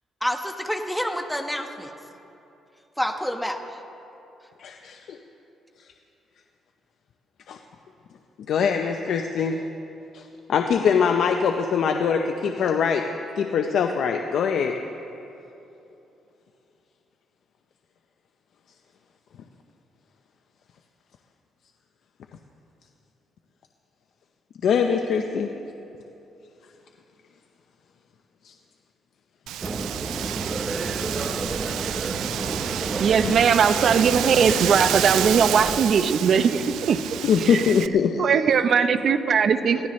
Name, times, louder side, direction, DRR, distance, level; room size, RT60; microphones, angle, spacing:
voice 1, 0.2-1.9 3.0-3.8, equal, ahead, 5 dB, 1.2 m, -28 dB
voice 2, 4.6-5.2 7.5-7.6 8.5-9.6 10.1-13.0 13.4-14.8 24.6-25.5 28.4-28.5 31.2-31.4 33.2-33.4 37.2-38.4, left 6 dB, 70° left, 4 dB, 0.7 m, -23 dB
Wind, 29.5-37.9, right 12 dB, 85° right, 0.3 m, -30 dB
sound 1, 29.6-35.8, right 3 dB, 30° right, 1.0 m, -30 dB
voice 3, 33.0-37.0 37.5-37.6 38.2-39.9, right 6 dB, 60° right, 10 dB, 0.8 m, -20 dB
22.5 x 16.0 x 3.2 m, 2.9 s
cardioid pair, 90°, 0 cm